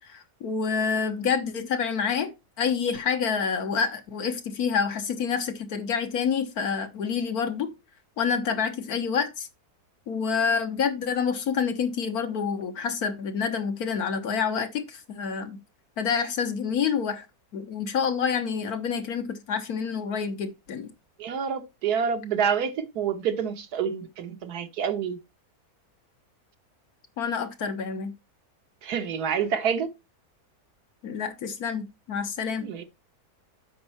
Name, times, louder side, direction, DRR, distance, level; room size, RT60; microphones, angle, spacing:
voice 1, 0.1-2.3 2.6-7.7 8.2-9.5 10.1-15.6 16.0-17.2 17.5-20.9 27.2-28.1 31.0-32.7, left 6 dB, 75° left, 1.7 m, -28 dB
voice 2, 21.2-25.2 28.8-29.9 32.6-32.8, right 7 dB, 85° right, 1.5 m, -27 dB
8.5 x 5.5 x 4.3 m
omnidirectional pair, 1.6 m